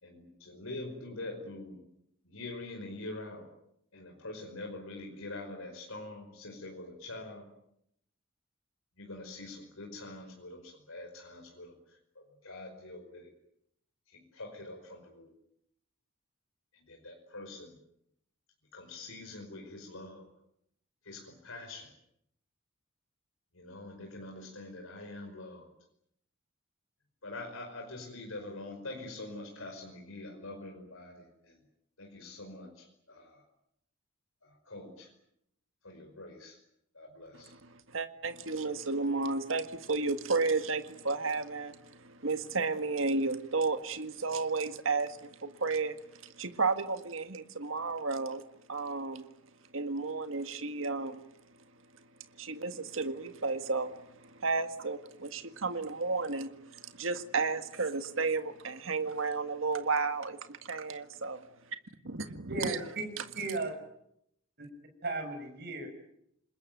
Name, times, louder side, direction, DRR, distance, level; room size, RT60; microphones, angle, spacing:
voice 1, 0.0-1.8 2.3-3.5 3.9-7.5 9.0-11.7 12.2-13.3 14.1-15.3 16.9-17.7 18.7-20.3 21.1-21.9 23.5-25.7 27.2-31.6 32.0-33.4 34.7-35.1 35.8-36.6 37.0-37.5, left 2 dB, 80° left, 5.2 m, -44 dB
voice 2, 37.3-48.4 48.7-49.3 49.7-51.3 52.4-61.5 62.0-62.8, right 4 dB, 70° right, 1.8 m, -33 dB
voice 3, 62.5-63.1 63.4-63.7 64.6-64.7 65.0-65.9, right 2 dB, 55° right, 7.0 m, -35 dB
27.5 x 21.0 x 9.3 m
head